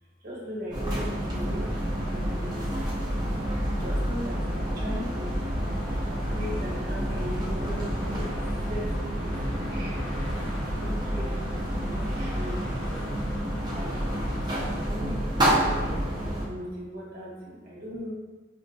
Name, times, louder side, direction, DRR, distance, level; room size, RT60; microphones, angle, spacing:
voice 1, 0.2-10.1 10.6-13.2 13.7-18.1, equal, 45° right, -4 dB, 0.8 m, -39 dB
sound 1, 0.7-16.5, equal, 20° right, 0.5 m, -29 dB
sound 2, 1.6-14.9, left 1 dB, 70° left, 0.7 m, -44 dB
4.9 x 2.1 x 2.6 m, 1.3 s
head